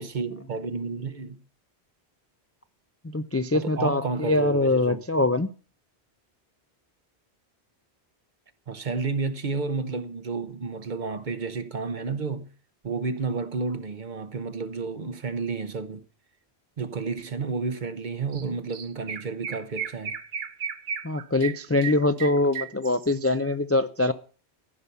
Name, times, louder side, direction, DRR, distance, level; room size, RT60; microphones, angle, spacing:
voice 1, 0.0-1.4 3.5-5.0 8.7-12.5 12.8-16.0 16.8-20.1, right 4 dB, 50° right, 0.9 m, -31 dB
voice 2, 3.0-5.5 21.0-24.1, left 2 dB, 25° left, 0.3 m, -23 dB
Chirp tweet, 18.3-18.4 18.7-23.3, right 7 dB, 70° right, 1.0 m, -35 dB
15.0 x 5.7 x 6.8 m
omnidirectional pair, 1.1 m